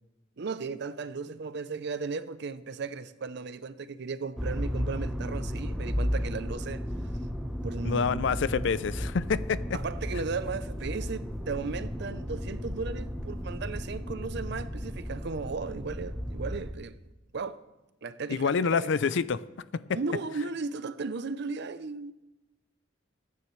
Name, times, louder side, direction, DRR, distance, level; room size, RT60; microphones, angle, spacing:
voice 1, 0.4-6.9 7.6-8.2 9.7-17.0 17.3-17.6 18.0-18.9 19.9-22.1, right 4 dB, 60° right, 0.6 m, -36 dB
Motor vehicle (road), 4.4-16.7, equal, ahead, 0.8 m, -34 dB
voice 2, 7.8-9.8 18.3-19.4, left 5 dB, 65° left, 0.4 m, -27 dB
22.0 x 9.6 x 3.2 m
head